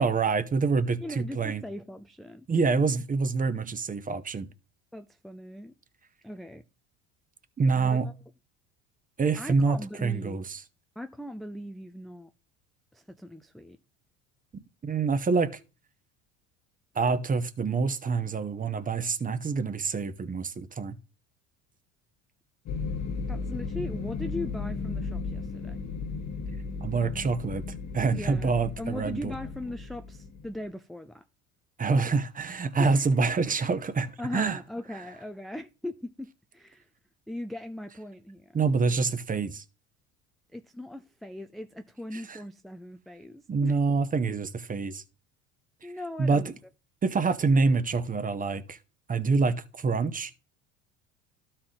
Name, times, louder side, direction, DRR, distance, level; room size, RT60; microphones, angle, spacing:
voice 1, 0.0-1.6 2.5-4.5 7.6-8.1 9.2-10.6 14.8-15.5 16.9-21.0 26.8-27.6 27.9-29.3 31.8-34.6 38.5-39.6 42.1-42.4 43.5-45.0 46.2-46.4 47.0-48.8 49.1-50.4, right 4 dB, 25° right, 0.9 m, -26 dB
voice 2, 1.0-2.5 4.9-5.7 6.2-6.6 7.8-8.0 9.3-10.4 11.0-12.3 12.9-13.8 23.3-25.8 28.1-31.2 32.8-33.0 34.2-36.9 37.3-38.6 40.5-43.8 45.8-46.5, left 1 dB, ahead, 0.4 m, -39 dB
sound 1, 22.7-30.6, left 4 dB, 50° left, 1.3 m, -35 dB
12.5 x 4.4 x 3.8 m
supercardioid pair, 90°, 35 cm